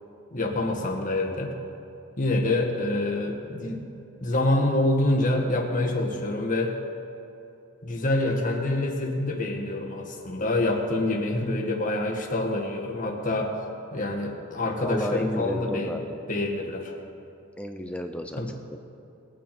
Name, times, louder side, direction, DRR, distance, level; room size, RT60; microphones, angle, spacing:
voice 1, 0.3-1.5 2.2-3.9 4.2-6.8 7.8-13.5 13.9-16.0 16.3-16.9 18.4-18.5, left 2 dB, 40° left, 1 dB, 1.7 m, -26 dB
voice 2, 14.8-16.2 17.6-18.4 18.7-18.8, equal, 5° left, 5 dB, 0.6 m, -32 dB
21.5 x 9.1 x 4.4 m, 2.8 s
head